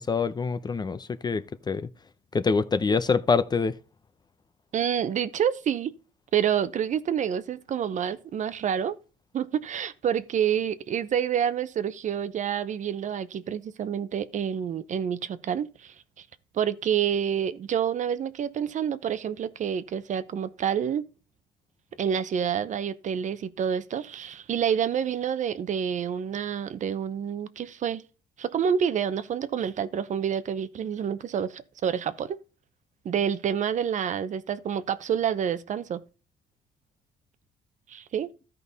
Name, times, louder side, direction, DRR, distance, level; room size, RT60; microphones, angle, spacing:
voice 1, 0.0-1.9 2.3-3.7, left 5 dB, 25° left, 0.7 m, -25 dB
voice 2, 4.7-5.9 6.3-9.0 9.3-15.9 16.5-21.0 22.0-28.0 28.4-32.4 33.0-36.0 37.9-38.3, right 8 dB, 45° right, 0.8 m, -28 dB
13.5 x 5.4 x 4.1 m
cardioid pair, 110°, 17 cm